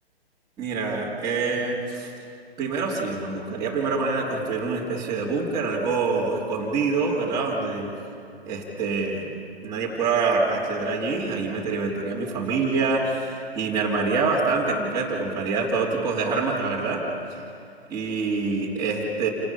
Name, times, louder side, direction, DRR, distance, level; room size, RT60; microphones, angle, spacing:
voice 1, 0.6-2.1 2.6-8.0 8.4-9.3 9.6-17.4 17.9-19.3, right 4 dB, 10° right, -7 dB, 2.9 m, -26 dB
29.0 x 18.5 x 5.6 m, 2.5 s
figure-of-eight pair, 130°, 32 cm